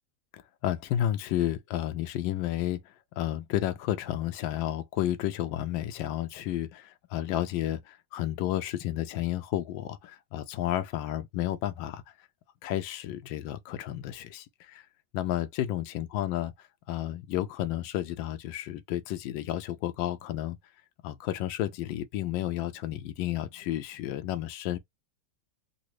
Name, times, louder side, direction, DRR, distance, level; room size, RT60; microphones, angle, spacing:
voice 1, 0.3-2.8 3.2-12.0 12.6-14.8 15.1-16.5 16.9-20.6 21.0-24.8, left 12 dB, 80° left, 1.3 m, -31 dB
3.8 x 2.0 x 3.0 m
omnidirectional pair, 2.1 m